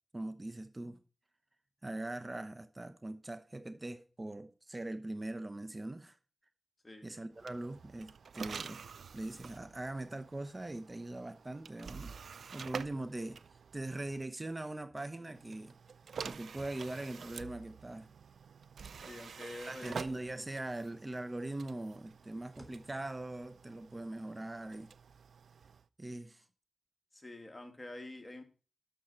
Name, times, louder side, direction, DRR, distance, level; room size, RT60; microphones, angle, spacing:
voice 1, 0.1-1.0 1.8-6.2 7.0-8.8 9.1-12.1 12.5-15.7 16.2-18.1 19.7-24.9 26.0-26.4, right 2 dB, 30° right, 0.9 m, -41 dB
sound 1, 7.3-14.3 15.3-25.9, right 6 dB, 85° right, 0.4 m, -48 dB
voice 2, 19.0-20.0 27.1-28.4, left 2 dB, 25° left, 2.6 m, -47 dB
sound 2, 25.9-26.1, equal, 10° right, 3.4 m, -67 dB
12.0 x 6.4 x 4.5 m
cardioid pair, 45°, 0 cm